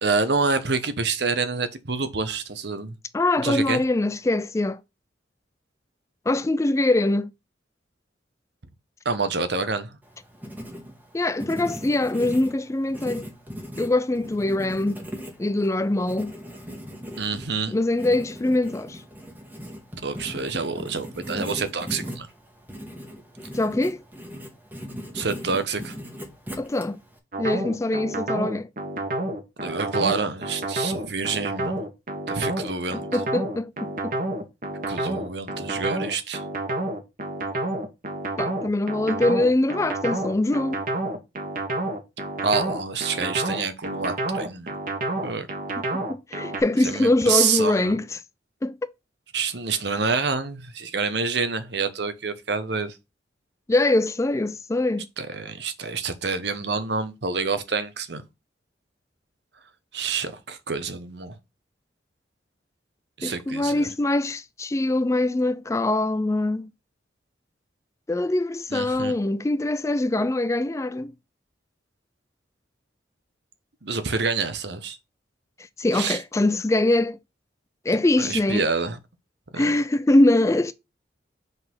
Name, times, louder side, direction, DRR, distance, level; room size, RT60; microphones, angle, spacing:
voice 1, 0.0-3.0 3.4-3.8 9.0-10.0 17.2-17.7 20.0-22.3 25.1-26.0 29.6-31.8 32.3-33.1 34.9-36.5 42.4-44.7 45.2-45.5 46.8-48.0 49.3-53.0 55.2-58.2 59.9-61.4 63.2-63.9 68.7-69.1 73.8-75.0 75.9-76.2 78.2-79.0 79.5-79.7, right 4 dB, 65° right, 1.1 m, -27 dB
voice 2, 3.1-4.8 6.3-7.3 11.1-13.3 13.8-15.0 15.4-16.3 17.7-19.0 23.5-24.0 26.6-27.0 27.4-28.7 33.1-34.2 38.4-40.8 45.8-45.9 46.1-48.2 48.6-48.9 53.7-55.1 63.2-66.7 68.1-71.1 75.8-77.2 77.9-78.7 79.6-80.7, left 2 dB, 15° left, 0.3 m, -23 dB
Writing, 10.0-27.2, equal, 10° right, 1.4 m, -39 dB
sound 1, 27.3-46.6, right 2 dB, 50° right, 1.6 m, -29 dB
5.4 x 4.0 x 5.4 m
head